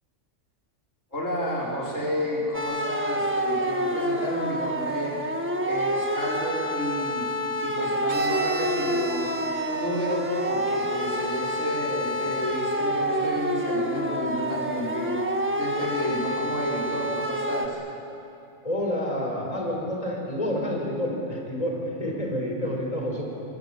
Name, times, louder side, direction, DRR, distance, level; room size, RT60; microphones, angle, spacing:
voice 1, 1.1-5.2 5.6-7.3 7.6-9.3 9.7-15.2 15.6-17.8, equal, 80° left, -3 dB, 5.3 m, -31 dB
sound 1, 2.5-17.7, equal, 10° right, 1.6 m, -28 dB
Bowed string instrument, 8.1-11.8, right 2 dB, 65° right, 2.8 m, -37 dB
voice 2, 18.6-23.2, equal, 30° left, -1 dB, 4.8 m, -29 dB
24.5 x 24.5 x 8.5 m, 2.7 s
omnidirectional pair, 1.3 m